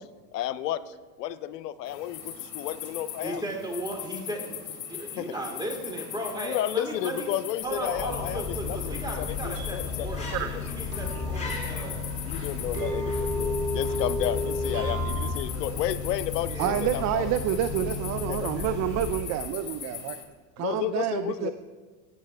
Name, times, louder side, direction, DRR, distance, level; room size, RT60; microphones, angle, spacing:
voice 1, 0.3-3.4 5.2-5.3 6.4-10.4 11.2-11.9 12.2-16.6 16.9-17.3 18.3-18.5 20.6-21.5, left 12 dB, 85° left, 15 dB, 0.6 m, -32 dB
sound 1, 1.9-20.2, left 9 dB, 40° left, 2.0 m, -40 dB
voice 2, 3.2-7.3 7.6-12.1 14.6-15.7 16.4-17.0, right 1 dB, 10° right, 0 dB, 2.5 m, -36 dB
sound 2, 7.6-19.5, left 5 dB, 15° left, 2.7 m, -35 dB
sound 3, 7.7-15.4, left 1 dB, 80° right, 3.9 m, -34 dB
voice 3, 16.6-20.2 20.6-21.5, right 11 dB, 35° right, 10 dB, 0.4 m, -28 dB
17.0 x 8.4 x 3.3 m, 1.4 s
hypercardioid pair, 95°, 47 cm